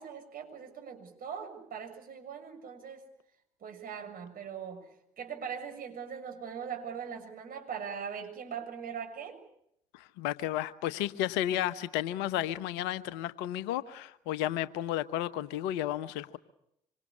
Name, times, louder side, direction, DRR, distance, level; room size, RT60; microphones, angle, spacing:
voice 1, 0.0-3.1 3.6-9.4, right 7 dB, 50° right, 5 dB, 7.0 m, -41 dB
voice 2, 9.9-16.4, left 12 dB, 70° left, 15 dB, 1.2 m, -33 dB
26.0 x 26.0 x 8.6 m, 0.77 s
hypercardioid pair, 55°, 19 cm